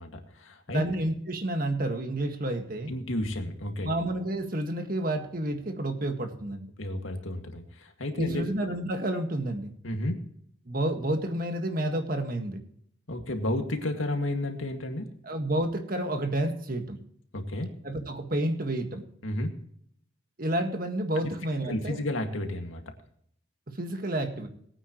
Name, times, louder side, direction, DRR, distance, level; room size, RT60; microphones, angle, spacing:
voice 1, 0.0-0.8 2.9-3.9 6.8-8.4 9.8-10.3 13.1-15.1 17.3-17.7 19.2-19.5 21.2-21.3 21.7-22.8, left 1 dB, 85° left, 5 dB, 2.1 m, -32 dB
voice 2, 0.7-2.9 3.8-6.7 8.2-9.7 10.7-12.6 15.3-17.0 17.8-19.0 20.4-22.0 23.8-24.5, right 1 dB, 45° right, 6 dB, 1.7 m, -30 dB
21.0 x 9.3 x 3.1 m, 0.66 s
head